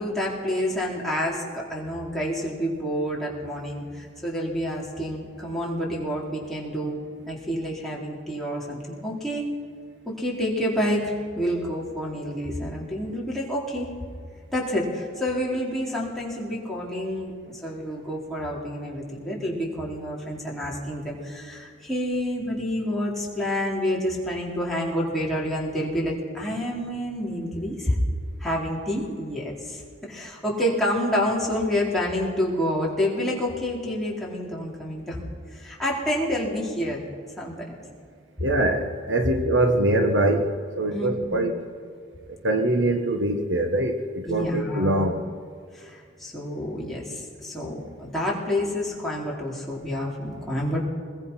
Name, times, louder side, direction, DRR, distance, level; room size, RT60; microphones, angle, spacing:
voice 1, 0.0-7.0 7.3-9.4 10.1-13.9 14.5-17.3 17.6-28.0 28.4-35.2 35.5-37.0 37.4-37.7 40.9-41.4 44.3-45.1 45.7-50.8, equal, ahead, -5 dB, 4.2 m, -28 dB
voice 2, 38.4-41.5 42.4-45.2, right 1 dB, 65° right, 5 dB, 1.5 m, -23 dB
25.0 x 21.0 x 5.8 m, 2.1 s
head